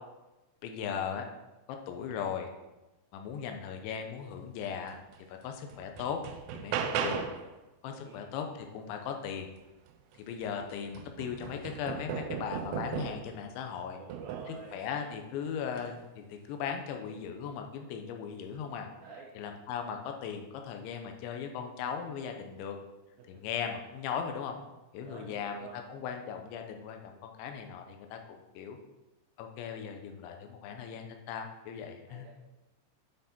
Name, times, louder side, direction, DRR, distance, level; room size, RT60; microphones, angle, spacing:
voice 1, 0.6-1.3 1.7-2.5 3.1-5.0 5.3-6.2 6.5-7.2 7.8-9.5 10.2-14.0 14.5-18.9 19.4-22.8 23.3-24.6 24.9-28.8 29.4-32.3, left 7 dB, 80° left, 4 dB, 3.2 m, -38 dB
sound 1, 5.1-5.2 5.7-7.5 9.9-10.0 10.4-13.4 14.1-14.6 15.7-15.9, right 7 dB, 90° right, 2.3 m, -36 dB
voice 2, 6.8-7.3 7.8-8.2 14.0-14.9 19.0-19.3 23.2-23.4 25.0-26.2 32.1-32.4, right 5 dB, 70° right, -2 dB, 2.4 m, -49 dB
9.3 x 7.5 x 4.3 m, 1.0 s
omnidirectional pair, 5.4 m